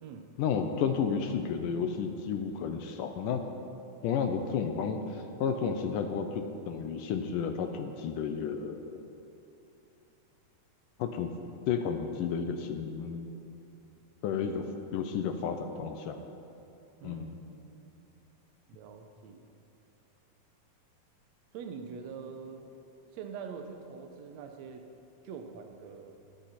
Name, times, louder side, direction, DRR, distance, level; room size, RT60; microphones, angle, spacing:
voice 1, 0.4-3.4 4.0-9.0 11.0-11.3 11.7-13.4 14.2-14.7 14.9-16.3 17.0-17.3, left 6 dB, 75° left, 6 dB, 2.1 m, -32 dB
voice 2, 17.0-17.9 18.7-19.5 21.5-22.7 23.1-24.9 25.2-26.2, right 6 dB, 75° right, 5 dB, 1.6 m, -44 dB
23.0 x 10.5 x 4.3 m, 2.7 s
omnidirectional pair, 4.2 m